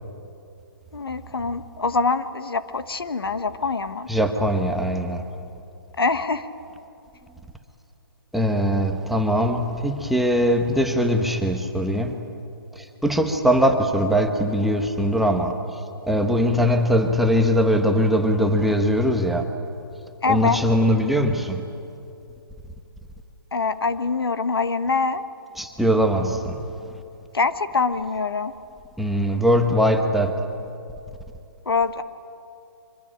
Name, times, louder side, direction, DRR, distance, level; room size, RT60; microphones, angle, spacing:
voice 1, 0.9-4.1 6.0-6.5 20.2-20.6 23.5-25.2 27.3-28.5 31.6-32.0, left 4 dB, 75° left, 11 dB, 1.4 m, -24 dB
voice 2, 4.1-5.2 8.3-12.2 13.0-15.5 16.1-19.4 20.3-21.6 25.6-26.6 29.0-30.3, equal, ahead, 4 dB, 1.2 m, -21 dB
24.5 x 23.0 x 8.8 m, 2.8 s
figure-of-eight pair, 140°, 13 cm